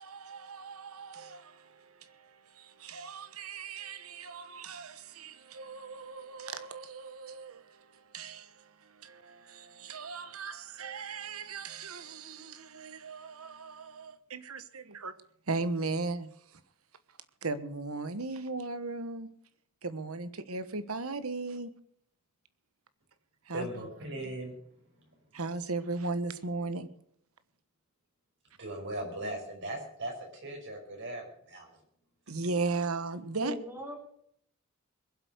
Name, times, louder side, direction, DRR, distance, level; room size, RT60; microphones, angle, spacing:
voice 1, 0.0-15.1 15.5-16.6 17.1-19.3 19.8-21.7 23.4-23.8 25.3-26.9 32.3-33.6, right 3 dB, 90° right, 1.3 m, -37 dB
voice 2, 23.5-24.5 28.6-31.7, right 1 dB, 60° right, 5.5 m, -38 dB
voice 3, 33.4-34.0, left 2 dB, 10° right, 3.7 m, -39 dB
21.5 x 8.1 x 6.6 m
head